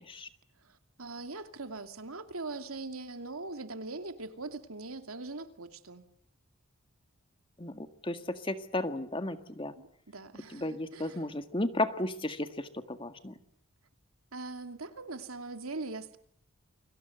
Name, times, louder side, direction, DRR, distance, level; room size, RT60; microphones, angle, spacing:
voice 1, 0.6-6.0 9.8-11.3 14.3-16.2, right 3 dB, 85° right, 2.7 m, -41 dB
voice 2, 7.6-9.7 10.5-13.3, left 1 dB, 25° left, 1.8 m, -34 dB
30.0 x 24.5 x 8.0 m
head